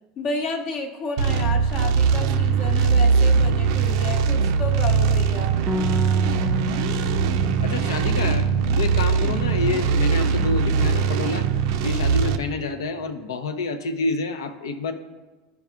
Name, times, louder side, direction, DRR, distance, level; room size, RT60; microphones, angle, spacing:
voice 1, 0.2-5.6, left 2 dB, 50° left, 3 dB, 0.9 m, -31 dB
sound 1, 1.2-12.4, right 5 dB, 70° right, 0.4 m, -21 dB
Bass guitar, 5.7-11.9, left 4 dB, 5° right, 0.4 m, -33 dB
voice 2, 7.6-8.5 8.8-11.5 11.8-14.9, left 3 dB, 85° left, 9 dB, 0.6 m, -28 dB
11.0 x 4.7 x 2.4 m, 1.2 s
hypercardioid pair, 100°, 2 cm